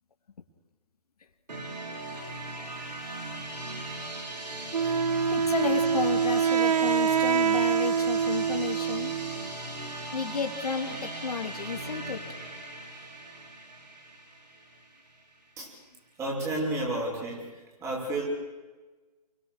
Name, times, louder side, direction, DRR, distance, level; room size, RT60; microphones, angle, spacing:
sound 1, 1.5-15.2, right 2 dB, 90° right, 5.9 m, -38 dB
Wind instrument woodwind instrument, 4.7-9.5, right 7 dB, 65° right, 1.1 m, -25 dB
voice 1, 5.3-9.1 10.1-12.2, left 5 dB, 65° left, 4 dB, 3.0 m, -32 dB
voice 2, 16.2-17.5 17.8-18.2, right 2 dB, 15° right, -2 dB, 6.5 m, -31 dB
30.0 x 22.5 x 6.7 m, 1.3 s
hypercardioid pair, 150°, 21 cm